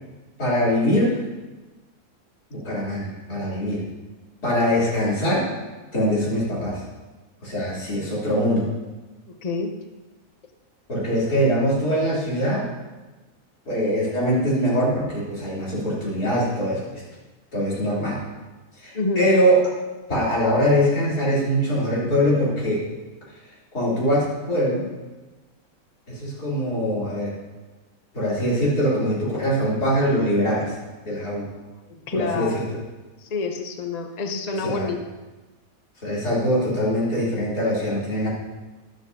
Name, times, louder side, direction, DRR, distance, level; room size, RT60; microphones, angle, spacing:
voice 1, 0.4-1.2 2.5-3.8 4.4-5.5 5.9-6.8 7.4-8.7 10.9-12.7 13.7-17.0 17.5-18.2 18.8-19.7 20.1-22.9 23.7-24.9 26.1-27.4 28.1-30.7 31.0-31.5 32.1-32.7 34.6-34.9 36.0-38.3, equal, 90° left, -8 dB, 4.1 m, -22 dB
voice 2, 9.4-9.7 18.9-19.3 31.9-32.6 33.2-35.0, left 3 dB, 45° left, 4 dB, 0.5 m, -27 dB
13.0 x 11.5 x 2.8 m, 1.2 s
omnidirectional pair, 1.6 m